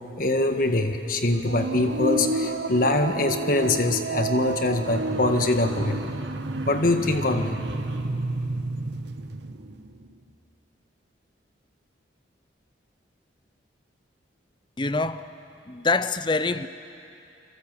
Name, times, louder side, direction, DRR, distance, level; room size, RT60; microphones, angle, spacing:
voice 1, 0.2-6.0 6.7-7.6, left 2 dB, 50° left, 1.7 m, -23 dB
sound 1, 1.5-8.3 8.6-9.3, right 2 dB, 70° right, 0.8 m, -32 dB
sound 2, 4.8-10.1, right 2 dB, 90° right, 1.4 m, -33 dB
voice 2, 14.8-15.3 15.7-16.7, left 3 dB, 25° left, 0.7 m, -25 dB
28.5 x 22.5 x 7.8 m
head